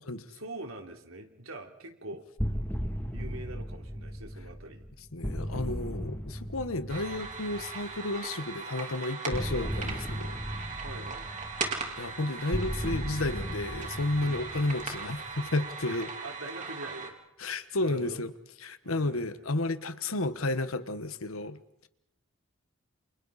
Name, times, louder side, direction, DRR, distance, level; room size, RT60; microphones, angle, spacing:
voice 1, 0.3-2.3 3.1-4.9 10.8-11.3 14.2-14.7 15.9-17.2 17.8-18.2 18.8-19.5, right 2 dB, 85° right, 3.4 m, -44 dB
sound 1, 2.4-8.1 9.3-15.6, equal, 10° left, 2.6 m, -36 dB
voice 2, 5.1-10.4 12.0-16.1 17.4-18.3 18.6-21.6, left 2 dB, 80° left, 1.4 m, -32 dB
sound 2, 6.9-17.1, right 4 dB, 35° right, 3.8 m, -39 dB
29.5 x 29.0 x 4.3 m
head